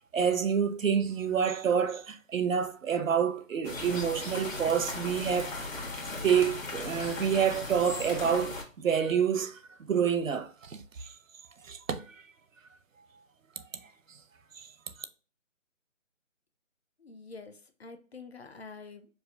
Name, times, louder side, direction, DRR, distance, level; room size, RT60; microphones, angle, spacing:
voice 1, 0.1-5.7 6.2-11.1 11.6-12.1 14.6-14.7, right 7 dB, 70° right, 0.7 m, -28 dB
sound 1, 3.6-8.6, left 3 dB, 75° left, 1.4 m, -37 dB
voice 2, 17.0-19.1, left 4 dB, 50° left, 0.6 m, -47 dB
4.7 x 2.5 x 2.6 m
figure-of-eight pair, 170°, 40 cm